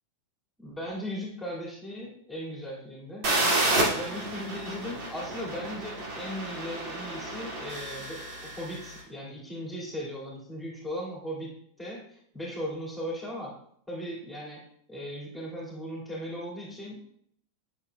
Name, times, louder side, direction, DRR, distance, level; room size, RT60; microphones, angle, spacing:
voice 1, 0.6-3.3 3.7-11.5 11.8-13.5 13.9-14.6 14.9-17.0, equal, ahead, -4 dB, 2.6 m, -37 dB
sound 1, 3.2-8.9, right 2 dB, 45° right, 2.4 m, -30 dB
9.8 x 6.4 x 2.4 m, 0.67 s
figure-of-eight pair, 90°, 0 cm